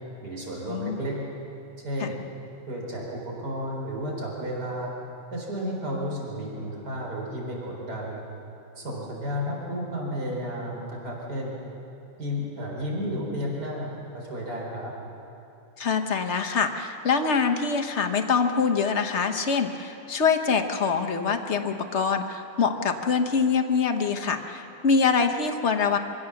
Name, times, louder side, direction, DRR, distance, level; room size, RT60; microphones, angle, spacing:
voice 1, 0.2-1.2 1.8-2.1 2.7-4.9 5.3-8.2 8.8-11.5 12.2-14.9, equal, 50° right, -2 dB, 4.7 m, -32 dB
voice 2, 15.8-26.0, left 5 dB, 40° left, 6 dB, 1.1 m, -24 dB
26.0 x 16.0 x 7.1 m, 2.9 s
omnidirectional pair, 2.3 m